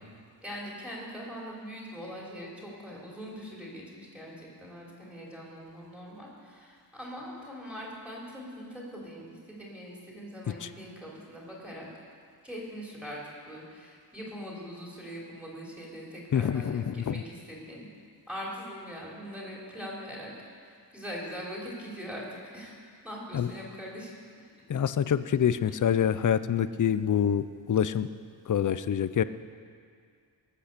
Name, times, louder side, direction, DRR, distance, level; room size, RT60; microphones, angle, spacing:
voice 1, 0.4-11.9 12.4-13.2 13.4-17.9 18.3-22.8 23.0-24.1 25.7-25.8, equal, 5° right, -4 dB, 3.4 m, -42 dB
voice 2, 16.3-17.2 23.3-23.5 24.7-28.1 28.5-29.2, left 8 dB, 45° left, 14 dB, 0.5 m, -26 dB
21.0 x 8.4 x 6.7 m, 2.2 s
wide cardioid pair, 155°, 43 cm